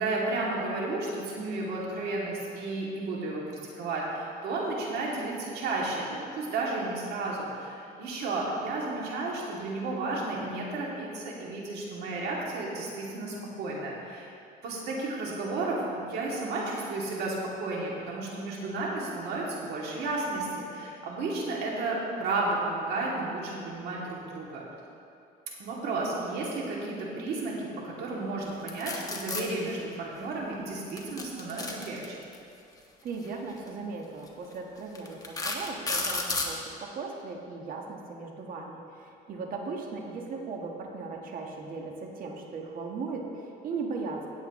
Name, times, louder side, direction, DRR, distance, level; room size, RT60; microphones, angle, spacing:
voice 1, 0.0-3.4 3.7-14.3 14.6-24.6 25.6-32.2, right 2 dB, 70° right, -4 dB, 2.6 m, -32 dB
sound 1, 28.7-29.4 30.9-32.4 33.5-33.7 34.3-34.4 35.0-36.5, left 3 dB, 20° left, 1.3 m, -32 dB
voice 2, 33.0-44.3, right 4 dB, 55° right, 1 dB, 1.4 m, -37 dB
17.0 x 8.1 x 3.2 m, 2.6 s
cardioid pair, 110°, 17 cm